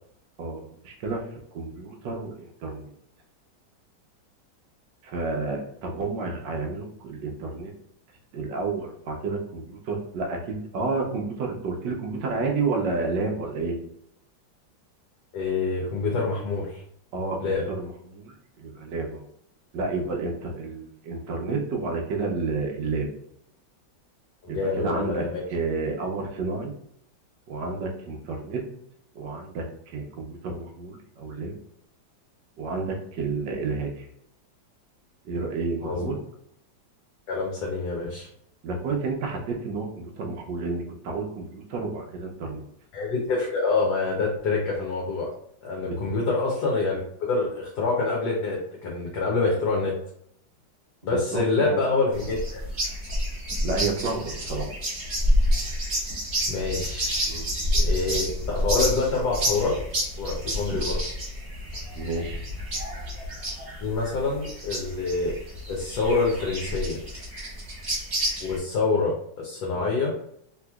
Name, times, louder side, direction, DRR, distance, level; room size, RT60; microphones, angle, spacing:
voice 1, 0.4-1.2 1.5-2.9 5.0-7.7 8.3-13.7 17.1-19.3 19.7-23.1 24.5-26.7 27.5-28.6 29.1-31.5 32.6-34.1 35.2-36.2 38.6-42.6 45.8-46.0 51.1-51.8 53.6-54.7 57.3-57.5 61.9-62.4, right 3 dB, 70° right, 1 dB, 1.3 m, -30 dB
voice 2, 15.3-16.8 17.4-17.6 24.4-25.4 35.8-36.1 37.3-38.3 42.9-45.3 45.6-49.9 51.0-52.6 56.5-57.3 57.7-59.8 60.2-61.0 63.8-65.3 65.7-67.0 68.4-70.1, left 3 dB, 65° left, -3 dB, 1.2 m, -26 dB
sound 1, 52.1-68.6, equal, 40° right, 1.2 m, -29 dB
3.4 x 2.9 x 2.3 m, 0.71 s
omnidirectional pair, 2.1 m